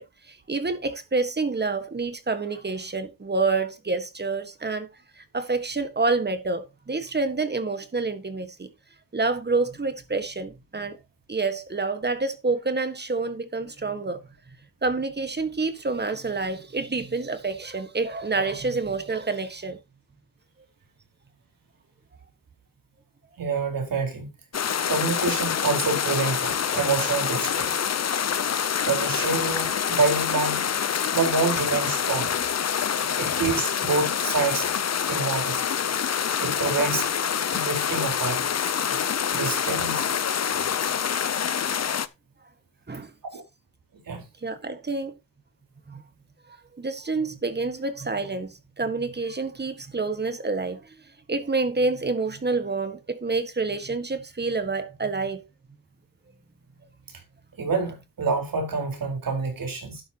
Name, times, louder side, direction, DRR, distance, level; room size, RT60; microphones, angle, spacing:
voice 1, 0.0-4.9 5.1-8.7 9.1-11.0 11.3-14.2 14.8-19.8 32.8-33.2 38.9-39.0 42.9-43.1 44.4-45.1 45.9-46.0 46.8-51.0 51.3-55.4, right 3 dB, 30° right, 1.6 m, -28 dB
voice 2, 23.4-24.3 24.9-27.8 28.8-30.8 31.1-32.3 33.2-34.7 35.1-35.6 36.4-37.1 37.5-38.4 38.9-39.0 39.3-40.1 44.1-44.2 57.6-60.0, right 4 dB, 85° right, 4.5 m, -27 dB
sound 1, 24.5-42.1, left 8 dB, 50° left, 0.7 m, -26 dB
12.0 x 9.2 x 2.9 m
wide cardioid pair, 145°, 33 cm